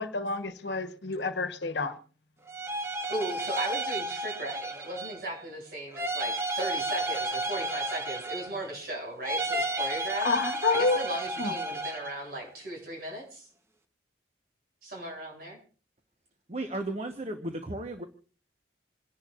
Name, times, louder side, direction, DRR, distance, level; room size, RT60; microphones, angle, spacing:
voice 1, 0.0-2.0 10.2-11.0 11.4-11.5, left 3 dB, 75° left, 1.1 m, -28 dB
sound 1, 2.5-5.3 5.9-8.7 9.2-12.2, right 2 dB, 15° right, 1.0 m, -32 dB
voice 2, 3.1-10.3 10.7-13.5 14.8-15.6, right 1 dB, 55° right, 7.9 m, -37 dB
voice 3, 16.5-18.0, right 1 dB, 35° right, 1.1 m, -34 dB
28.0 x 11.0 x 2.5 m
head